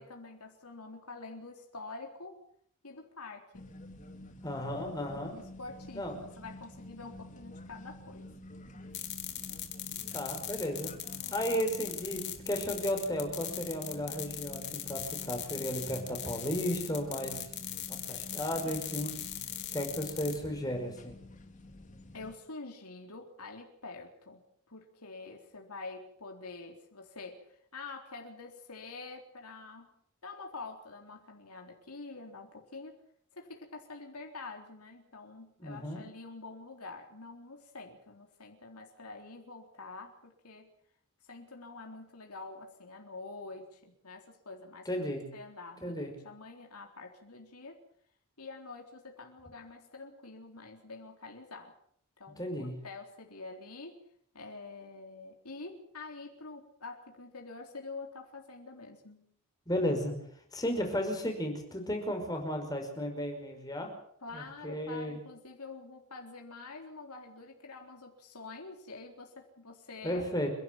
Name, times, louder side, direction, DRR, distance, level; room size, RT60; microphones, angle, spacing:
voice 1, 0.0-2.4 2.8-3.7 5.1-8.3 11.4-11.6 12.1-12.4 22.1-29.9 30.2-33.0 33.3-40.7 41.2-47.8 48.4-51.7 52.2-54.0 54.3-59.3 64.2-70.3, left 3 dB, 90° left, 2 dB, 4.0 m, -47 dB
sound 1, 3.5-22.3, left 1 dB, 35° left, 2.3 m, -49 dB
voice 2, 4.4-5.3 5.9-6.1 10.1-10.9 11.3-17.4 17.9-19.1 19.7-21.1 35.6-36.0 44.9-45.3 45.8-46.1 52.4-52.7 59.7-60.1 60.5-63.9 64.3-65.2 70.0-70.5, equal, 15° left, 3 dB, 5.6 m, -34 dB
sound 2, 8.9-20.4, left 12 dB, 50° left, 3.6 m, -39 dB
30.0 x 12.0 x 9.4 m, 0.67 s
head